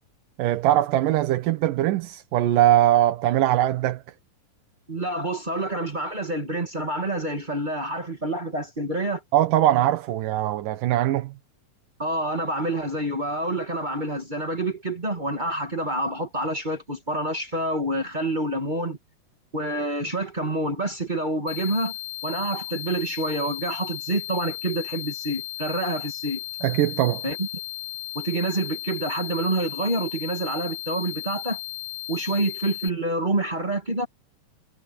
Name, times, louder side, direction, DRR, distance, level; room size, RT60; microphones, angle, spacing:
voice 1, 0.4-4.0 9.3-11.3 26.6-27.2, right 13 dB, 70° right, 2.6 m, -21 dB
voice 2, 4.9-9.2 12.0-19.0 19.5-21.9 22.2-26.4 27.2-27.5 28.1-31.6 32.1-34.1, right 1 dB, 20° right, 1.4 m, -27 dB
sound 1, 21.5-32.9, left 16 dB, 85° left, 2.8 m, -35 dB
omnidirectional pair, 4.0 m